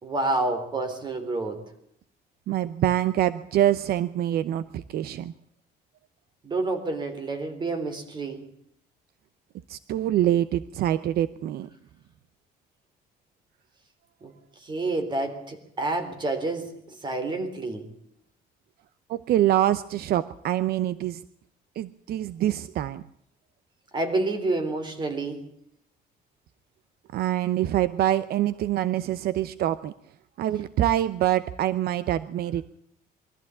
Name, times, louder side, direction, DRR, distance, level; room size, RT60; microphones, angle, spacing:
voice 1, 0.0-1.6 6.4-8.4 14.2-14.3 14.6-17.9 23.9-25.4, right 2 dB, 25° right, 7 dB, 3.9 m, -29 dB
voice 2, 2.5-5.3 9.7-11.7 19.1-21.2 21.8-23.0 27.1-29.9 30.4-32.7, right 12 dB, 70° right, 14 dB, 0.8 m, -25 dB
23.0 x 14.5 x 8.5 m, 0.73 s
cardioid pair, 160°, 17 cm